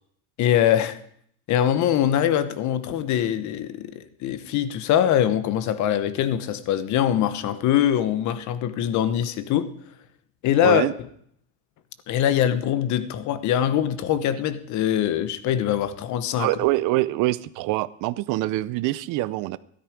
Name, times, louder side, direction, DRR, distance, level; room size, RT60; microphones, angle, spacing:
voice 1, 0.4-1.0 1.5-9.7 10.4-10.9 12.1-16.5, left 10 dB, 50° left, 1.1 m, -23 dB
voice 2, 16.4-19.6, right 17 dB, 60° right, 0.6 m, -24 dB
13.5 x 12.5 x 5.0 m
cardioid pair, 150°, 37 cm